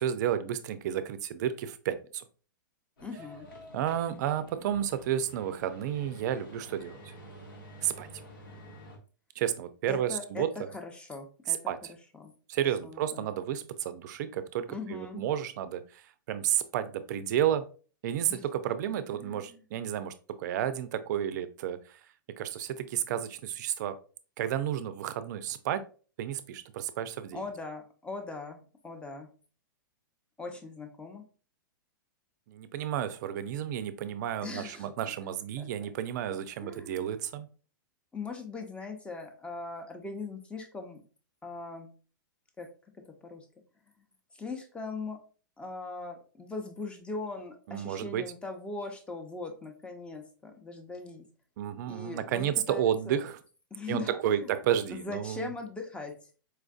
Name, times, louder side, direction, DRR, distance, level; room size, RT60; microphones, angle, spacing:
voice 1, 0.0-2.2 3.7-7.0 7.8-8.1 9.4-10.5 11.5-11.8 12.5-17.7 18.0-22.0 22.4-24.0 24.4-25.8 26.2-27.4 32.5-37.5 47.7-48.2 51.6-53.4 53.9-55.5, right 10 dB, 60° right, 12 dB, 0.4 m, -31 dB
sound 1, 3.0-9.0, equal, 80° left, 1.1 m, -49 dB
voice 2, 3.0-3.5 9.9-11.6 12.2-12.3 12.8-13.3 14.7-15.2 18.3-18.5 19.2-19.6 27.3-29.3 30.4-31.2 34.4-34.9 35.6-35.9 36.6-37.0 38.1-41.0 41.4-41.9 42.6-42.7 43.0-43.5 44.4-45.2 45.6-51.2 51.9-53.2 53.7-54.5 54.9-56.3, left 3 dB, 10° left, 3 dB, 0.7 m, -40 dB
4.4 x 2.5 x 2.4 m, 0.38 s
hypercardioid pair, 125°, 11 cm